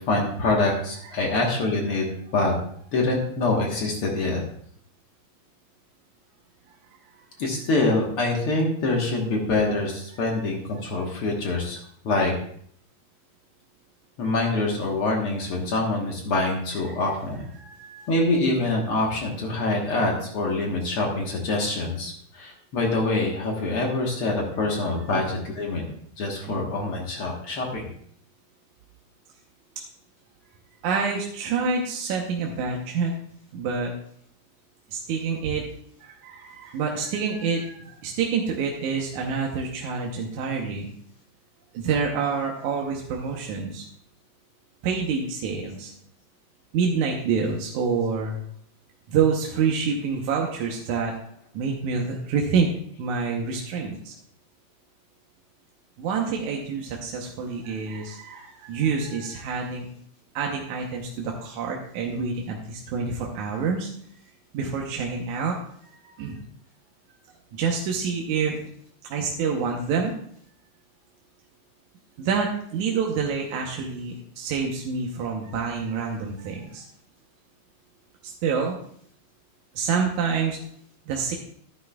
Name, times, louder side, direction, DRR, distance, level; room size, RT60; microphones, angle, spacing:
voice 1, 0.1-2.1 2.3-2.5 2.9-4.4 7.4-11.8 12.0-12.3 14.2-17.4 18.1-25.8 26.2-27.9, left 2 dB, 55° left, 0 dB, 1.9 m, -25 dB
voice 2, 17.6-18.1 25.0-25.2 26.5-26.6 30.8-33.1 33.5-33.9 34.9-35.6 36.0-40.9 41.7-43.8 44.8-45.9 46.7-48.4 49.1-51.2 51.5-52.7 53.0-54.1 56.0-59.9 60.3-63.9 64.5-65.6 65.8-66.4 67.5-68.7 69.1-70.2 72.2-76.8 78.2-78.8 79.7-80.6 81.1-81.4, right 5 dB, 75° right, 0 dB, 2.3 m, -27 dB
13.0 x 10.0 x 2.3 m, 0.63 s
omnidirectional pair, 3.5 m